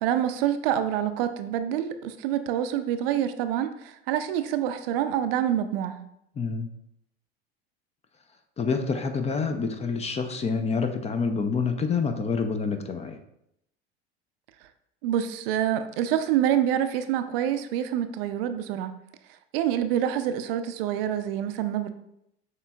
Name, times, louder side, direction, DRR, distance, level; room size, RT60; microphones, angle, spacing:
voice 1, 0.0-6.0 15.0-19.0 19.5-21.9, right 10 dB, 65° right, 10 dB, 0.5 m, -26 dB
voice 2, 6.4-6.7 8.6-13.2, left 5 dB, 20° left, 7 dB, 0.4 m, -27 dB
6.5 x 3.0 x 2.3 m, 0.79 s
hypercardioid pair, 80°, 32 cm